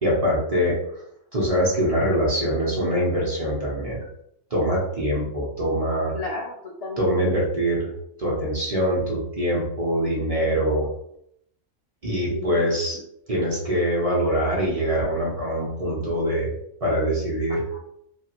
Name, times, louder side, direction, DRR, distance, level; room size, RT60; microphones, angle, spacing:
voice 1, 0.0-0.8 1.3-4.1 4.5-6.1 7.0-7.9 8.2-10.9 12.0-13.0 13.3-16.5 16.8-17.6, equal, 35° right, -4 dB, 0.7 m, -23 dB
voice 2, 6.1-7.4 12.3-12.7 17.5-17.8, left 3 dB, 65° left, -4 dB, 0.4 m, -33 dB
2.6 x 2.4 x 2.9 m, 0.74 s
omnidirectional pair, 1.3 m